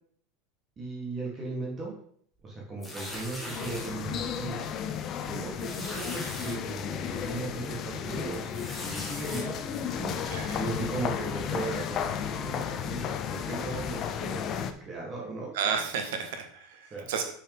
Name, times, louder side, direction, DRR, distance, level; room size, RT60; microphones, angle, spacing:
voice 1, 0.8-2.0 2.4-4.7 5.2-9.6 9.9-10.2 10.5-14.5 14.8-15.5 16.9-17.1, right 3 dB, 20° right, -3 dB, 1.5 m, -37 dB
sound 1, 2.8-3.9 4.5-4.7 4.9-5.0 5.6-6.6 7.2-7.3 8.5-9.4, left 1 dB, 5° left, 1.3 m, -40 dB
sound 2, 3.5-14.7, left 8 dB, 30° left, 0.5 m, -33 dB
voice 2, 10.3-10.6 15.5-17.2, right 6 dB, 85° right, 5 dB, 1.4 m, -32 dB
6.1 x 4.7 x 5.2 m, 0.63 s
supercardioid pair, 170°, 0 cm